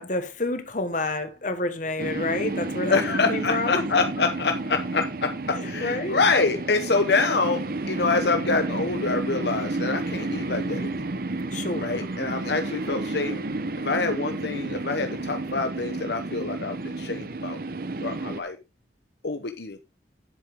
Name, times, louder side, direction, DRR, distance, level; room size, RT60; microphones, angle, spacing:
voice 1, 0.0-3.8 5.5-6.2 11.5-11.9, left 2 dB, 45° left, 1.4 m, -29 dB
sound 1, 2.0-18.4, right 2 dB, 55° right, 0.8 m, -31 dB
voice 2, 2.8-11.0 11.8-13.4 13.8-17.6 18.0-18.6 19.2-19.8, left 4 dB, 70° left, 0.9 m, -26 dB
11.0 x 7.7 x 3.6 m
head